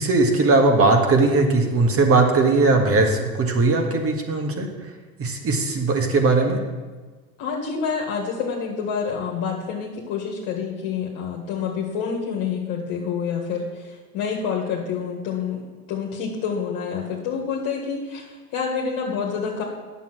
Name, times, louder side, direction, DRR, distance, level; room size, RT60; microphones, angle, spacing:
voice 1, 0.0-4.7 5.2-6.6, right 3 dB, 30° right, 4 dB, 1.8 m, -19 dB
voice 2, 7.4-15.6 15.9-19.6, left 6 dB, 50° left, -2 dB, 1.8 m, -28 dB
9.4 x 7.1 x 6.2 m, 1.3 s
hypercardioid pair, 85°, 43 cm